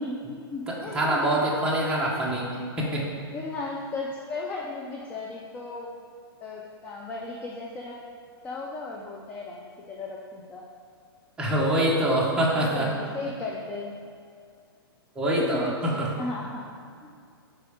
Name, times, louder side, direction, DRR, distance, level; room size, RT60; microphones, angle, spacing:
voice 1, 0.0-1.4 3.3-5.9 6.4-8.0 8.4-10.6 12.7-13.9 15.3-15.7 16.2-16.6 17.0-17.1, left 3 dB, 10° left, -2 dB, 0.3 m, -35 dB
voice 2, 0.7-2.5 2.8-3.1 11.4-12.9 15.2-16.1, right 1 dB, 5° right, -4 dB, 0.9 m, -25 dB
5.0 x 4.3 x 4.9 m, 2.3 s
hypercardioid pair, 150°, 13 cm